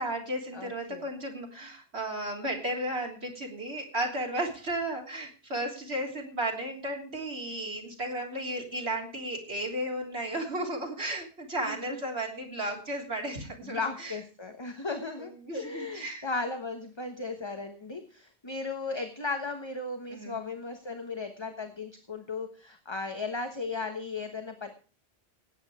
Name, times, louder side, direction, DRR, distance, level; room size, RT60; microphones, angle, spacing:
voice 1, 0.0-14.2 15.2-16.3 20.1-20.4, right 1 dB, 80° right, 0 dB, 3.8 m, -34 dB
voice 2, 0.5-1.1 11.7-12.0 13.6-24.7, left 3 dB, 25° left, 6 dB, 1.2 m, -36 dB
17.5 x 8.9 x 4.9 m, 0.36 s
omnidirectional pair, 1.1 m